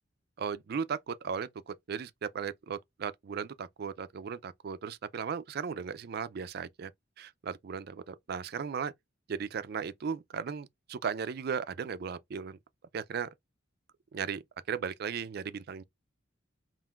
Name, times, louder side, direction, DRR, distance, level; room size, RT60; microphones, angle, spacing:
voice 1, 0.4-6.9 7.2-8.9 9.3-12.6 12.9-13.3 14.1-14.4 14.7-15.8, right 6 dB, 50° right, 0.4 m, -36 dB
5.5 x 2.5 x 2.4 m
head